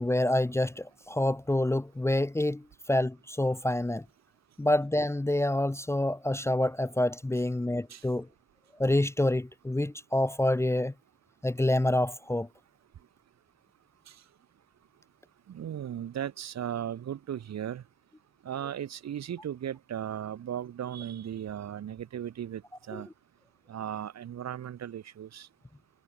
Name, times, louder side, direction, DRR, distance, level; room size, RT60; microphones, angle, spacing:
voice 1, 0.0-2.6 2.9-4.0 4.6-8.3 8.8-10.9 11.4-12.5 22.9-23.0, left 1 dB, 10° left, 1.0 m, -27 dB
voice 2, 15.5-17.8 18.4-22.6 22.9-23.1 23.7-25.5, right 10 dB, 60° right, 2.9 m, -36 dB
cardioid pair, 90°, 30 cm